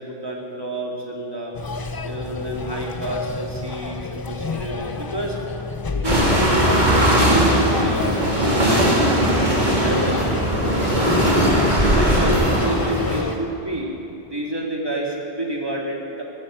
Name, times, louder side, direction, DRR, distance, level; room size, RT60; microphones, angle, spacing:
voice 1, 0.0-1.5 2.0-5.4 5.9-11.4 11.9-13.9 14.3-16.2, right 1 dB, 25° right, -2 dB, 2.3 m, -29 dB
sound 1, 1.5-13.3, left 3 dB, 30° left, 0.5 m, -30 dB
sound 2, 6.0-13.2, equal, 45° right, 3.0 m, -19 dB
16.0 x 10.5 x 7.6 m, 2.9 s
omnidirectional pair, 1.0 m